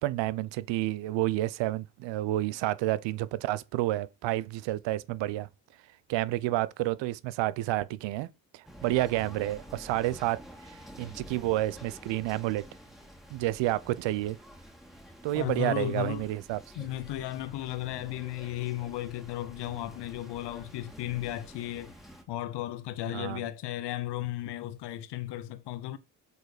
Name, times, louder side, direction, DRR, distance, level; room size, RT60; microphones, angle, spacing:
voice 1, 0.0-5.5 6.1-8.3 8.5-12.6 13.3-14.4 15.2-16.6 23.1-23.5, right 16 dB, 80° right, 0.7 m, -30 dB
sound 1, 8.6-22.2, equal, ahead, 1.8 m, -49 dB
voice 2, 15.3-16.3 16.8-21.9 22.3-26.0, left 14 dB, 70° left, 0.8 m, -35 dB
6.7 x 4.1 x 4.9 m
supercardioid pair, 75°, 44 cm